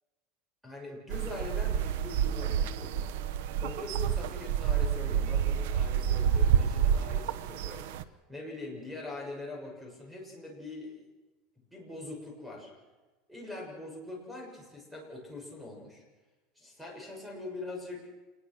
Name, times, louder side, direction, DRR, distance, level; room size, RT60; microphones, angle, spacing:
voice 1, 0.6-3.1 3.6-11.0 11.7-12.7 13.3-16.0 16.5-18.1, left 2 dB, 5° right, 0 dB, 6.7 m, -43 dB
sound 1, 1.1-8.0, right 8 dB, 80° right, 1.1 m, -29 dB
27.5 x 20.5 x 6.3 m, 1.2 s
supercardioid pair, 160°, 0 cm